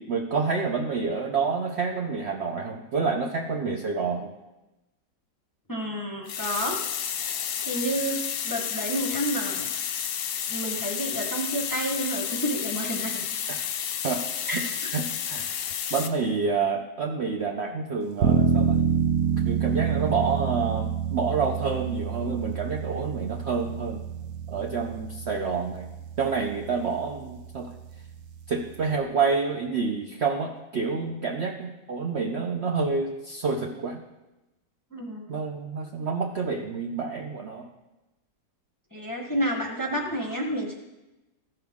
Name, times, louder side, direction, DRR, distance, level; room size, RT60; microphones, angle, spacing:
voice 1, 0.0-4.3 13.5-13.6 14.0-14.2 14.5-14.6 14.9-18.8 19.5-24.0 24.5-25.9 26.2-27.7 28.5-34.0 35.3-37.7, right 5 dB, 55° right, 0 dB, 0.8 m, -28 dB
voice 2, 5.7-6.8 7.7-8.2 8.4-9.7 10.5-13.2 14.5-14.6 34.9-35.4 38.9-40.7, right 1 dB, 15° left, -1 dB, 0.9 m, -30 dB
sound 1, 6.3-16.1, left 8 dB, 65° left, 1.0 m, -31 dB
sound 2, 18.2-29.0, right 7 dB, 70° right, 1.1 m, -28 dB
14.5 x 5.8 x 3.6 m, 1.0 s
omnidirectional pair, 1.8 m